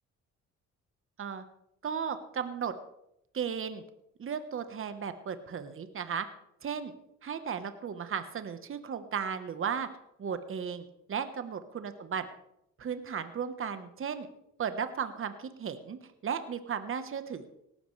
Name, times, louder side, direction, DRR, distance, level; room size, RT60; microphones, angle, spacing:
voice 1, 1.8-2.7 3.3-3.8 4.2-6.3 6.6-6.9 7.2-9.9 10.2-12.2 12.8-14.3 14.6-17.5, right 7 dB, 45° right, 10 dB, 1.2 m, -35 dB
17.5 x 13.0 x 3.3 m, 0.80 s
cardioid pair, 90°, 30 cm